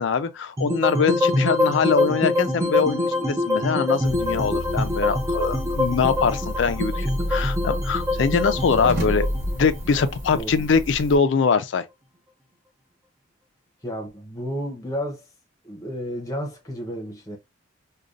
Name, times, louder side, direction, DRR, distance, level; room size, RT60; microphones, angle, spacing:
voice 1, 0.0-9.3 9.5-11.8, left 5 dB, 70° left, 0.4 m, -23 dB
sound 1, 0.6-10.8, left 2 dB, 15° right, 0.6 m, -25 dB
sound 2, 4.0-11.2, equal, 50° right, 1.1 m, -30 dB
voice 2, 10.3-10.7 13.8-15.3 15.6-17.4, equal, 15° left, 0.8 m, -32 dB
5.0 x 2.2 x 2.5 m
head